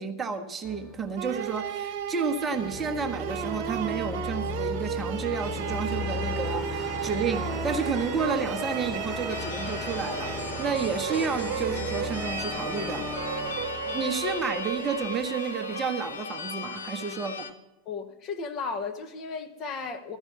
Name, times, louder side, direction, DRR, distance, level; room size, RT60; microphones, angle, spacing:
voice 1, 0.0-13.1 13.9-17.5, right 5 dB, 20° right, 1.0 m, -31 dB
sound 1, 0.6-1.9 2.5-15.1, left 2 dB, 15° left, 1.7 m, -36 dB
sound 2, 1.2-16.2, right 9 dB, 50° right, 0.6 m, -34 dB
sound 3, 9.3-17.5, left 6 dB, 70° left, 0.7 m, -38 dB
voice 2, 13.8-14.2 17.8-20.2, left 4 dB, 35° left, 1.1 m, -35 dB
14.0 x 5.4 x 9.4 m
figure-of-eight pair, 90°, 0 cm